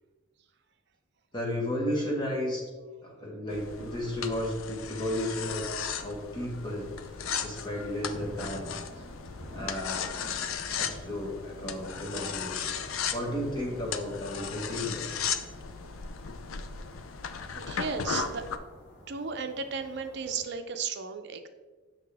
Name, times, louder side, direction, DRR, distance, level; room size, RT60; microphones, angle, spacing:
voice 1, 1.3-2.6 3.0-6.9 7.4-8.7 9.5-10.1 10.7-12.8 13.1-15.1, left 1 dB, 20° left, -2 dB, 1.4 m, -33 dB
sound 1, 3.5-18.6, left 7 dB, 75° left, 0.5 m, -36 dB
sound 2, 5.9-20.4, equal, 60° left, 1.8 m, -54 dB
sound 3, 8.1-18.1, equal, 5° right, 1.4 m, -50 dB
voice 2, 17.6-18.4 19.1-21.5, right 5 dB, 55° right, 7 dB, 0.6 m, -34 dB
7.3 x 6.1 x 3.4 m, 1.3 s
head